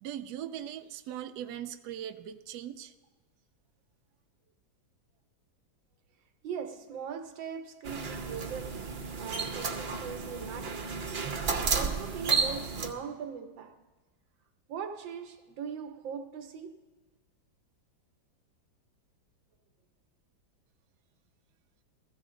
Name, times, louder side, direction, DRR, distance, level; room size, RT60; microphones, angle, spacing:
voice 1, 0.0-2.9, right 10 dB, 70° right, 1.0 m, -40 dB
voice 2, 6.4-8.9 9.2-11.0 11.5-13.8 14.7-16.8, right 7 dB, 90° right, 1.6 m, -40 dB
sound 1, 7.8-12.9, right 5 dB, 45° right, 0.9 m, -32 dB
15.5 x 14.5 x 3.7 m
omnidirectional pair, 2.0 m